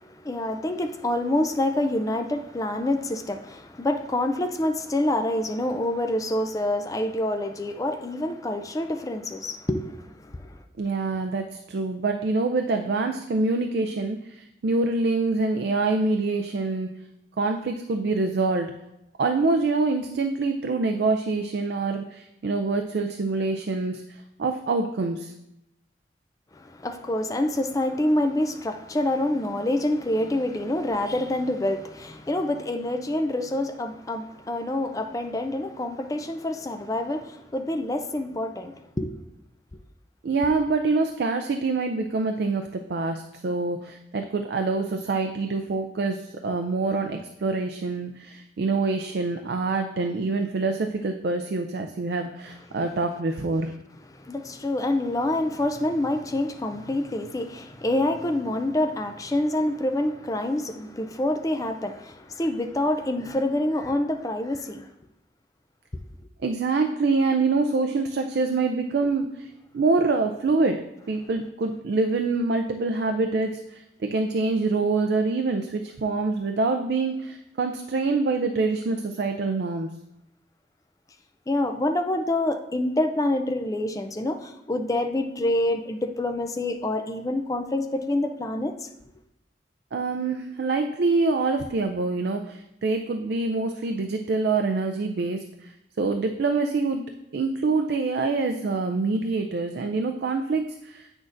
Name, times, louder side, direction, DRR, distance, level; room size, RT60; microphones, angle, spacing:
voice 1, 0.0-10.6 26.5-39.1 54.1-64.9 81.5-88.8, left 1 dB, 20° left, 0.4 m, -27 dB
voice 2, 10.8-16.9 17.4-18.7 19.2-25.3 40.2-53.7 66.4-79.9 89.9-95.7 96.0-97.0 97.3-101.1, right 3 dB, 65° right, 0.4 m, -25 dB
8.5 x 6.2 x 2.6 m
head